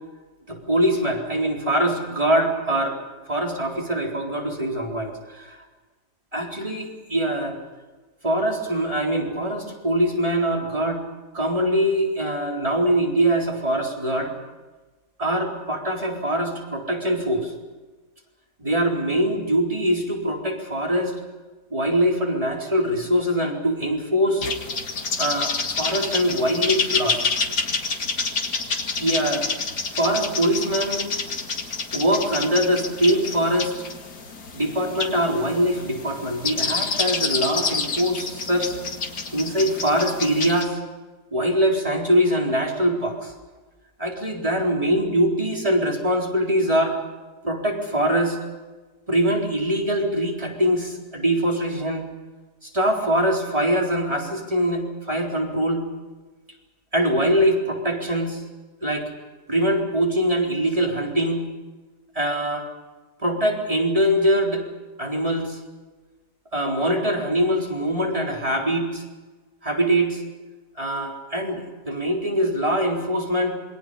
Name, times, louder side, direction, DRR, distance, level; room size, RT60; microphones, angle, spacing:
voice 1, 0.5-3.0 3.3-5.5 6.3-7.6 8.2-11.0 11.3-14.3 15.2-17.5 18.6-21.1 21.7-24.4 25.2-27.3 29.0-29.5 29.9-31.0 31.9-33.7 34.5-38.8 39.3-40.8 41.3-43.3 44.0-47.0 47.4-48.4 49.1-52.1 52.6-55.8 56.9-58.4 58.8-59.1 59.5-61.4 62.1-62.7 63.2-64.6 65.0-65.6 66.5-69.0 69.6-70.2 70.8-73.6, equal, 20° right, -1 dB, 4.1 m, -23 dB
sound 1, 24.4-40.6, left 4 dB, 85° left, 2.6 m, -28 dB
27.5 x 23.0 x 5.6 m, 1.3 s
omnidirectional pair, 1.7 m